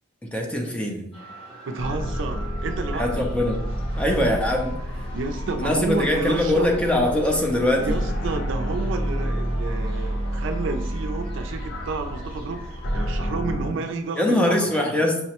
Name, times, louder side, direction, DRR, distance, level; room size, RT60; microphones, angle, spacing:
voice 1, 0.2-1.1 2.9-3.6 3.9-5.1 5.6-8.0 14.2-15.2, left 1 dB, 5° left, 0 dB, 0.4 m, -22 dB
sound 1, 1.1-13.1, equal, 30° left, 0.9 m, -43 dB
voice 2, 1.7-3.3 5.1-6.7 7.8-12.6 12.9-14.9, right 3 dB, 65° right, 6 dB, 0.4 m, -30 dB
sound 2, 1.8-13.7, equal, 65° left, 0.5 m, -29 dB
5.6 x 2.1 x 2.8 m, 0.79 s
head